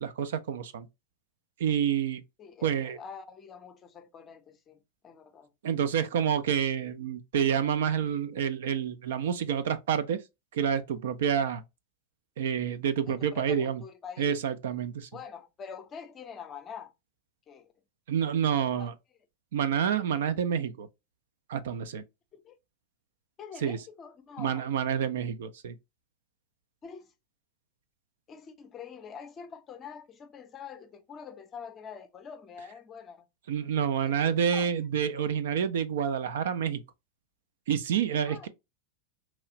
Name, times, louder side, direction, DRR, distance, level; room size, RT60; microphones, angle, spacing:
voice 1, 0.0-0.9 1.6-2.2 2.6-3.0 5.6-10.2 10.5-11.6 12.4-13.8 14.2-15.1 18.1-18.9 19.5-20.9 21.5-22.0 23.6-23.8 24.4-25.7 33.5-36.8 37.7-38.5, right 8 dB, 60° right, 0.4 m, -28 dB
voice 2, 2.4-5.5 13.1-14.4 15.1-16.9 17.5-17.7 18.8-18.9 22.3-22.6 23.4-24.7 26.8-27.1 28.3-33.3 34.0-34.7 38.2-38.5, left 6 dB, 25° left, 0.6 m, -45 dB
2.9 x 2.3 x 2.8 m
figure-of-eight pair, 90°, 0 cm